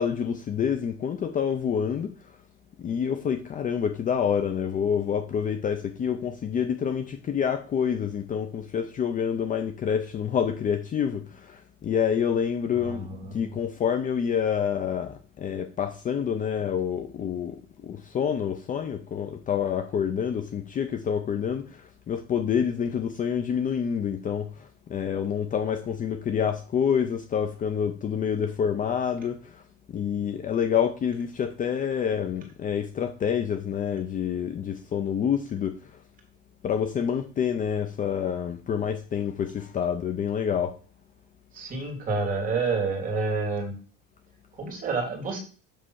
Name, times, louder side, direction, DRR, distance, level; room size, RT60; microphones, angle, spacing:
voice 1, 0.0-2.1 2.8-29.6 29.9-36.0 36.6-40.8, left 7 dB, 25° left, 0.7 m, -27 dB
voice 2, 12.8-13.5 41.5-43.7 44.6-45.4, right 3 dB, 25° right, 2.9 m, -29 dB
7.6 x 3.4 x 6.3 m
cardioid pair, 155°, 31 cm